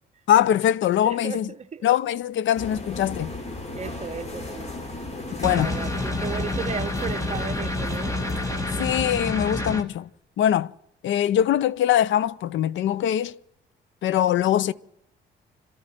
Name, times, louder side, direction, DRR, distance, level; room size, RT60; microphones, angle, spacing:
voice 1, 0.3-1.5 1.8-3.3 5.3-5.8 8.8-10.1 10.4-10.7 11.0-13.4 14.0-14.7, left 11 dB, 70° left, 0.6 m, -22 dB
voice 2, 1.0-1.9 3.7-4.7 5.3-8.2, right 7 dB, 35° right, 0.9 m, -35 dB
sound 1, 2.5-9.0, left 2 dB, 35° left, 3.2 m, -36 dB
sound 2, 5.4-9.8, left 2 dB, 15° left, 2.1 m, -28 dB
27.5 x 13.0 x 7.6 m
cardioid pair, 90°, 20 cm